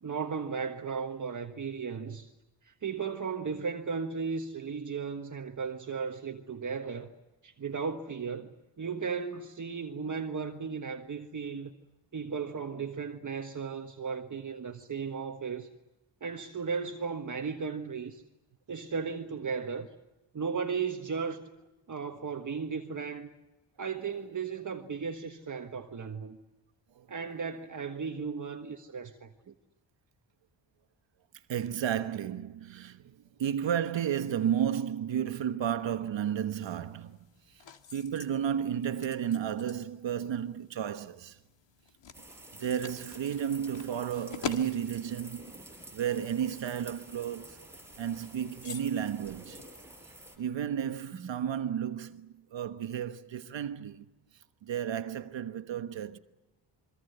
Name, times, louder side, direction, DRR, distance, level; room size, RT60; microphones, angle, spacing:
voice 1, 0.0-2.3 2.6-7.1 7.4-8.5 8.8-11.7 12.1-15.7 16.2-18.2 18.7-19.9 20.3-21.4 21.9-23.3 23.8-26.4 27.1-29.5 51.2-51.3, right 5 dB, 40° right, 1.5 m, -35 dB
voice 2, 31.5-37.2 37.9-41.4 42.6-45.5 45.9-47.6 48.0-49.6 50.4-54.1 54.6-56.2, right 9 dB, 70° right, 1.3 m, -32 dB
sound 1, 36.7-50.5, left 7 dB, 70° left, 2.1 m, -47 dB
sound 2, 42.1-50.4, right 1 dB, 5° right, 5.8 m, -50 dB
27.5 x 23.5 x 8.1 m
cardioid pair, 105°, 46 cm